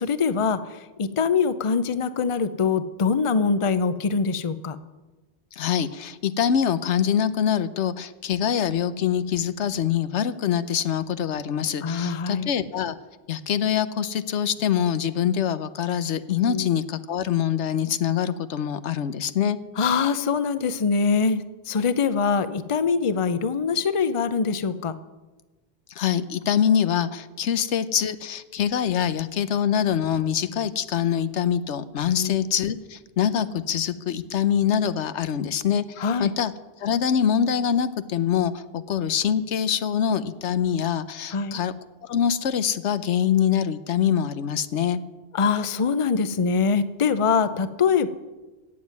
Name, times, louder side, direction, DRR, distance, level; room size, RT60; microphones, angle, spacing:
voice 1, 0.0-4.8 11.8-12.5 16.4-16.7 19.8-24.9 32.1-32.4 36.0-36.3 41.3-41.6 45.3-48.1, left 5 dB, 35° left, 13 dB, 0.6 m, -23 dB
voice 2, 5.5-13.0 13.3-19.6 26.0-36.5 36.8-41.7 42.0-45.0, left 8 dB, 90° left, 13 dB, 1.1 m, -24 dB
17.0 x 7.4 x 9.4 m, 1.2 s
omnidirectional pair, 1.2 m